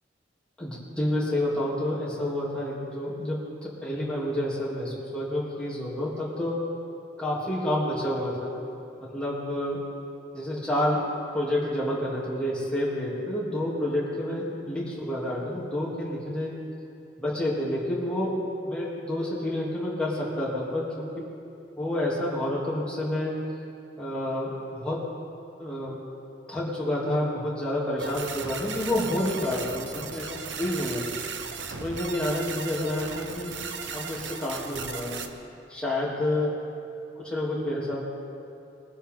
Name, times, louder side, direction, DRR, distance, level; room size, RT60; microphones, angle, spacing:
voice 1, 0.6-6.6 7.2-8.5 9.0-9.8 10.3-11.0 11.3-16.5 17.2-18.4 18.6-21.2 21.8-23.4 24.0-24.5 24.8-25.0 25.6-26.0 26.5-31.0 31.7-33.6 33.9-35.2 35.7-36.5 37.2-38.1, left 1 dB, 5° left, -7 dB, 3.0 m, -29 dB
sound 1, 28.0-35.3, right 5 dB, 85° right, 0.9 m, -36 dB
22.0 x 11.5 x 3.8 m, 2.7 s
head